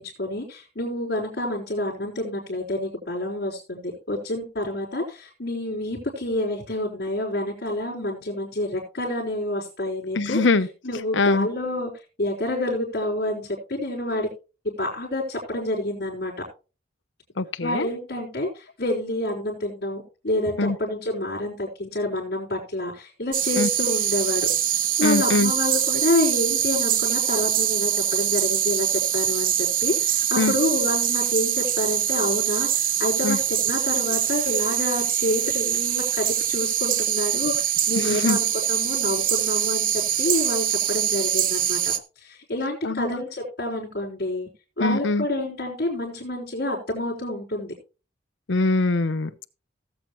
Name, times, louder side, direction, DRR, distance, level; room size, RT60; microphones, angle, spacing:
voice 1, 0.0-10.4 10.8-11.9 12.2-14.3 14.6-16.3 17.6-24.5 25.0-44.5 44.8-47.7, left 1 dB, 55° left, 4.5 m, -28 dB
voice 2, 10.1-10.7 11.1-11.5 17.4-17.9 20.6-20.8 23.6-23.7 25.0-25.5 30.4-30.5 33.2-33.4 37.9-38.4 42.8-43.2 44.8-45.2 48.5-49.5, left 3 dB, 70° left, 0.7 m, -23 dB
sound 1, 23.3-42.0, right 11 dB, 45° right, 0.7 m, -24 dB
18.0 x 7.8 x 3.1 m
head